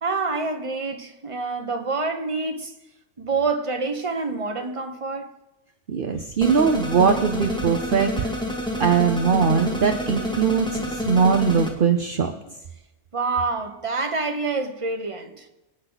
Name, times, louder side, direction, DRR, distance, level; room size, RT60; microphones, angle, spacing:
voice 1, 0.0-2.7 3.2-5.3 13.1-15.5, right 3 dB, 30° right, 1.3 m, -27 dB
voice 2, 5.9-8.3 8.8-12.3, right 6 dB, 50° right, 1.0 m, -21 dB
sound 1, 6.4-11.7, left 1 dB, 5° left, 2.1 m, -28 dB
25.5 x 9.2 x 4.1 m
omnidirectional pair, 1.2 m